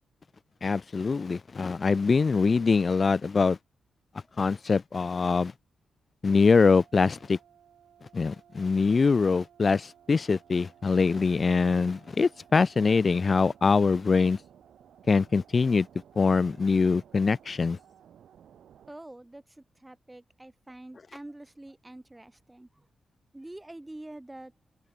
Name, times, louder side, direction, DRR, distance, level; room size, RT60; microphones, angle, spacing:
voice 1, 0.6-3.6 4.4-5.5 6.2-7.4 8.1-14.4 15.1-15.9 16.2-17.8, left 4 dB, 50° left, 0.6 m, -23 dB
sound 1, 6.5-18.9, right 9 dB, 75° right, 2.9 m, -57 dB
voice 2, 18.9-22.9 23.3-24.5, right 1 dB, 15° right, 3.8 m, -46 dB
supercardioid pair, 45°, 0 cm